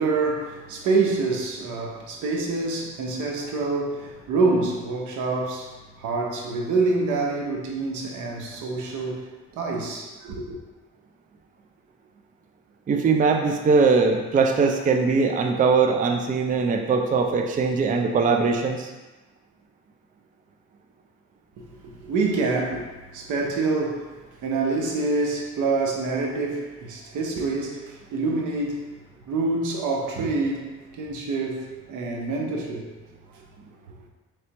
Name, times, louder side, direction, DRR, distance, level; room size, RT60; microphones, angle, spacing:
voice 1, 0.0-5.7 6.0-9.3 9.5-10.6 21.6-28.9 29.3-30.7 30.9-32.9, right 3 dB, 80° right, 0 dB, 0.8 m, -26 dB
voice 2, 12.9-18.9, right 4 dB, 30° right, 4 dB, 0.4 m, -21 dB
4.3 x 3.3 x 2.9 m, 1.2 s
cardioid pair, 90°, 30 cm